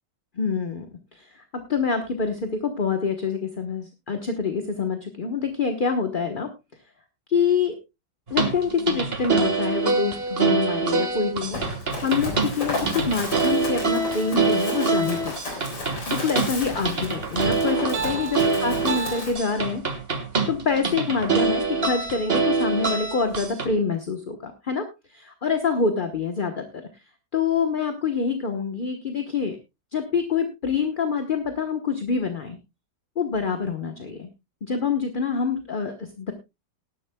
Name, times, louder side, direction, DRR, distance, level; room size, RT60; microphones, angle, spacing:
voice 1, 0.4-0.9 1.1-6.5 7.3-7.8 8.3-11.6 12.0-15.6 16.1-19.8 20.5-24.9 25.1-26.8 27.3-29.6 29.9-32.6 33.2-34.3 34.6-36.3, left 5 dB, 35° left, 6 dB, 1.0 m, -26 dB
sound 1, 8.3-23.7, right 4 dB, 35° right, 1.7 m, -25 dB
Run, 11.5-19.3, left 2 dB, 75° left, 4.5 m, -33 dB
19.0 x 11.5 x 2.2 m, 0.24 s
omnidirectional pair, 2.1 m